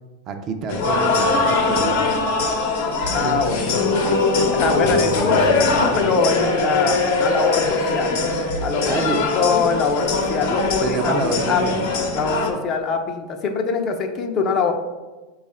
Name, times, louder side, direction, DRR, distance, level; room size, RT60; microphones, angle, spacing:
voice 1, 0.3-2.1 3.2-3.8 8.9-9.2 10.8-11.9, right 4 dB, 35° right, 6 dB, 0.4 m, -27 dB
sound 1, 0.7-12.5, left 3 dB, 70° left, 0.8 m, -21 dB
voice 2, 3.1-3.8 4.1-8.2 8.6-11.6 12.1-14.7, left 5 dB, 35° left, 4 dB, 0.5 m, -23 dB
4.8 x 2.4 x 4.2 m, 1.2 s
supercardioid pair, 135°, 0 cm